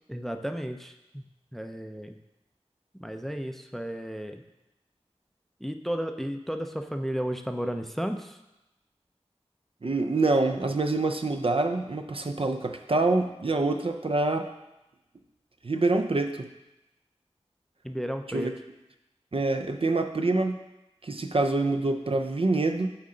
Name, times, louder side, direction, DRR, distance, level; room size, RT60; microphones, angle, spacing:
voice 1, 0.1-1.2 1.5-2.1 3.0-4.4 5.6-8.3 17.8-18.5, equal, ahead, 6 dB, 0.4 m, -33 dB
voice 2, 9.8-14.5 15.6-16.5 18.3-18.5 19.3-20.6 21.0-23.0, right 2 dB, 55° right, 6 dB, 0.4 m, -26 dB
7.4 x 4.3 x 3.8 m, 0.95 s
wide cardioid pair, 45°, 11 cm